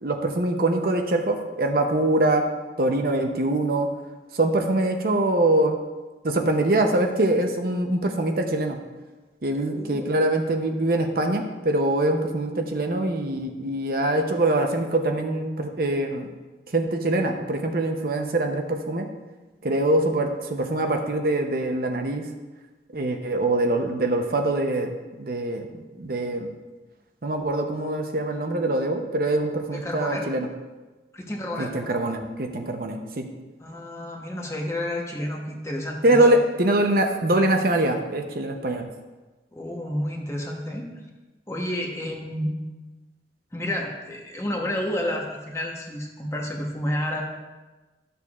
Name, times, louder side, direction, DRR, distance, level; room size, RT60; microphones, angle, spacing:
voice 1, 0.0-2.5 2.8-3.9 4.3-5.8 6.2-8.8 9.4-16.3 16.7-19.1 19.6-22.3 22.9-25.7 25.9-26.5 27.2-30.5 31.6-33.3 36.0-38.9, right 1 dB, 55° right, 4 dB, 0.7 m, -23 dB
voice 2, 9.7-10.1 29.7-30.3 31.1-31.7 33.6-36.2 39.5-40.9 41.5-42.5 43.5-47.2, left 1 dB, 15° left, 0 dB, 1.0 m, -30 dB
13.0 x 6.8 x 2.4 m, 1.2 s
head